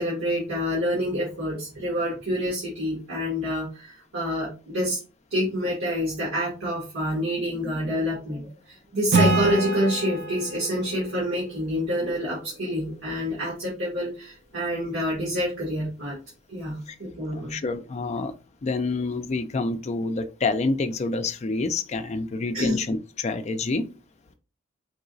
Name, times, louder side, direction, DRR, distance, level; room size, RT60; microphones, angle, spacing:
voice 1, 0.0-5.0 5.3-16.1 16.5-17.5 22.5-22.8, equal, 85° right, 1.6 m, -27 dB
Acoustic guitar / Strum, 9.1-12.6, right 3 dB, 55° right, 0.5 m, -27 dB
voice 2, 17.3-18.4 18.6-23.9, left 3 dB, 35° left, 0.3 m, -28 dB
4.7 x 2.9 x 2.6 m
head